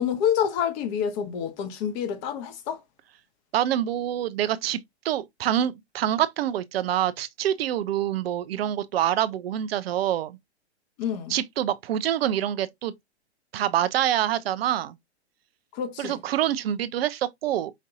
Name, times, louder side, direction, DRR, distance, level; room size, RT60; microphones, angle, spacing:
voice 1, 0.0-2.8 11.0-11.3 15.7-16.2, left 8 dB, 40° left, 1.0 m, -27 dB
voice 2, 3.5-4.8 5.0-10.4 11.3-12.9 13.5-15.0 16.0-17.7, right 11 dB, 60° right, 0.5 m, -26 dB
5.1 x 2.6 x 2.5 m
hypercardioid pair, 120°, 34 cm